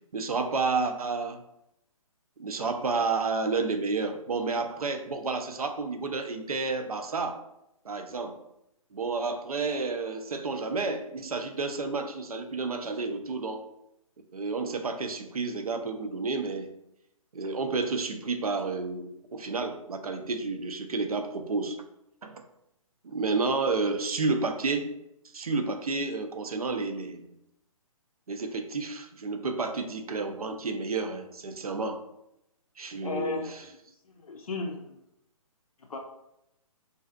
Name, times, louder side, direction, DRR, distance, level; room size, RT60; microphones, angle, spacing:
voice 1, 0.1-1.4 2.4-7.4 7.8-8.4 8.9-13.6 14.3-16.7 17.3-21.8 22.2-22.4 23.0-24.9 25.3-27.2 28.3-32.0 32.8-33.4, right 4 dB, 80° right, 7 dB, 0.4 m, -30 dB
voice 2, 33.0-33.6 34.0-35.0 35.8-36.0, left 3 dB, 75° left, 2 dB, 0.4 m, -35 dB
2.5 x 2.3 x 2.3 m, 0.82 s
figure-of-eight pair, 130°, 19 cm